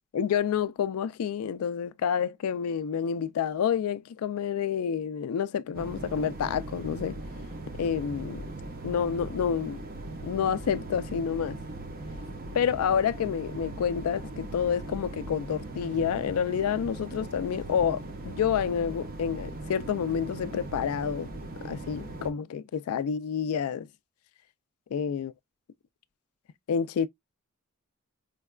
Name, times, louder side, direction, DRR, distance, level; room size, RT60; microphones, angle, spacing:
voice 1, 0.1-7.2 7.8-8.4 8.8-9.8 10.2-11.6 12.5-21.3 21.6-23.9 24.9-25.3 26.7-27.1, left 7 dB, 90° left, 0.3 m, -29 dB
sound 1, 5.7-22.3, right 2 dB, 45° right, 0.6 m, -39 dB
4.5 x 2.2 x 2.3 m
head